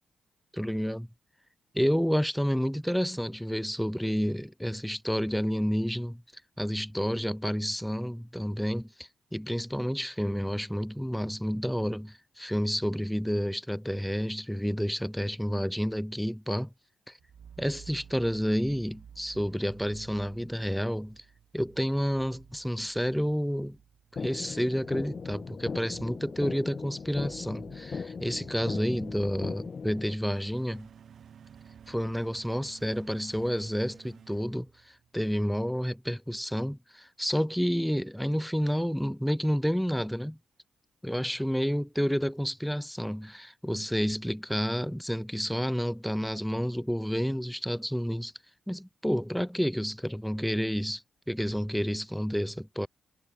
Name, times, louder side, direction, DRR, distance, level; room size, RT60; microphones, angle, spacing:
voice 1, 0.5-1.1 1.7-6.2 6.6-16.7 17.1-17.2 17.6-21.2 21.5-23.8 24.1-30.9 31.9-40.4 41.0-48.3 48.7-51.0 51.3-52.9, equal, ahead, 2.8 m, -30 dB
sound 1, 17.2-35.3, right 8 dB, 65° right, 5.0 m, -54 dB
sound 2, 24.2-30.2, left 5 dB, 50° left, 2.2 m, -38 dB
supercardioid pair, 50°, 0 cm